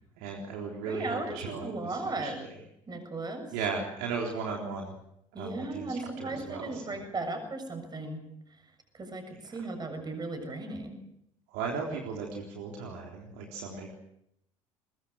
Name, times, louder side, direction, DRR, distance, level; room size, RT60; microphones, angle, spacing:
voice 1, 0.2-2.5 3.5-4.9 5.4-7.0 11.5-13.9, right 5 dB, 60° right, 0 dB, 3.8 m, -36 dB
voice 2, 0.9-2.4 2.9-3.5 4.5-4.7 5.3-8.3 8.9-11.0, right 2 dB, 25° right, 7 dB, 7.0 m, -36 dB
23.0 x 21.5 x 6.5 m, 0.77 s
figure-of-eight pair, 60°, 17 cm